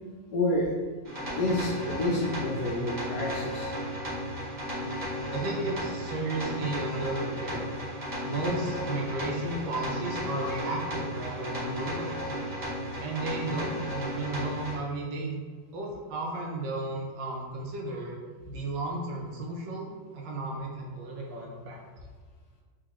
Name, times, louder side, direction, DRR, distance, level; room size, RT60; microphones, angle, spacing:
voice 1, 0.3-0.7 1.4-3.7, left 1 dB, 75° left, -2 dB, 1.0 m, -28 dB
sound 1, 1.0-14.8, equal, 20° right, 0.6 m, -34 dB
voice 2, 5.3-7.7 8.2-12.5 13.0-15.3 15.7-18.2 18.5-19.9 20.1-21.8, right 2 dB, 75° right, -1 dB, 1.3 m, -34 dB
3.6 x 2.7 x 2.9 m, 1.5 s
omnidirectional pair, 2.0 m